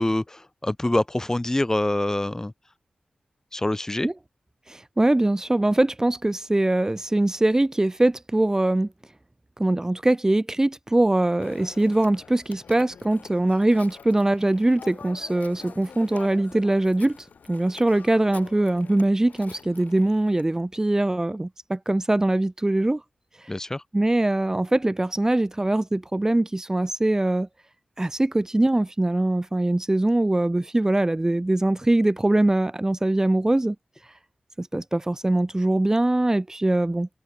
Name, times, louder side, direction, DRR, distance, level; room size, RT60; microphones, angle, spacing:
voice 1, 0.0-2.5 3.5-4.1 23.5-23.8, left 1 dB, 20° left, 3.0 m, -25 dB
voice 2, 4.7-8.9 9.6-23.0 23.4-23.5 23.9-27.5 28.0-33.7 34.0-34.1 34.6-37.1, right 1 dB, 20° right, 1.6 m, -22 dB
Telephone, 11.4-20.5, left 6 dB, 85° left, 3.8 m, -46 dB
cardioid pair, 60°, 3 cm